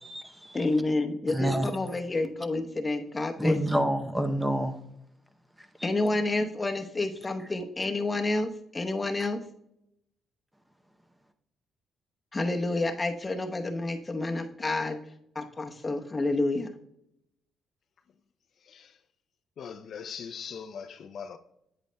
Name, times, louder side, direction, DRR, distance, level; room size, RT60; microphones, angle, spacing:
voice 1, 0.0-0.6 1.3-1.7 3.4-4.8 5.8-5.9, equal, 10° right, 0.6 m, -28 dB
voice 2, 0.5-3.9 5.8-9.4 12.3-15.0 15.3-16.7, left 2 dB, 25° left, 0.9 m, -29 dB
voice 3, 19.6-21.4, left 7 dB, 60° left, 0.5 m, -40 dB
8.8 x 8.1 x 2.2 m
cardioid pair, 90°, 0 cm